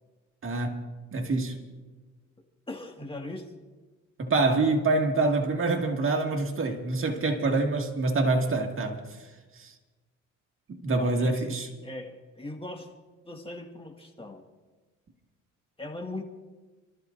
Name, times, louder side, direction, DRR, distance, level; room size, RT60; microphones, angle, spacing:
voice 1, 0.4-1.6 4.2-9.3 9.5-9.7 10.7-11.7, right 3 dB, 45° right, 2.0 m, -26 dB
voice 2, 2.7-3.5 11.0-12.9 13.3-14.4 15.8-16.2, left 2 dB, 20° left, 1.9 m, -39 dB
29.0 x 13.5 x 2.6 m
cardioid pair, 90°, 30 cm